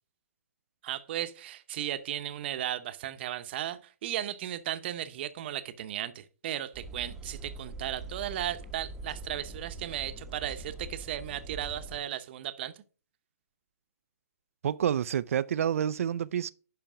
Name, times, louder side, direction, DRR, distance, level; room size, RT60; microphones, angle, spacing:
voice 1, 0.8-12.7, right 12 dB, 40° right, 0.8 m, -35 dB
sound 1, 6.7-12.0, right 2 dB, 5° right, 1.0 m, -43 dB
voice 2, 14.6-16.5, right 9 dB, 60° right, 0.4 m, -28 dB
9.0 x 5.8 x 4.9 m
hypercardioid pair, 150°, 8 cm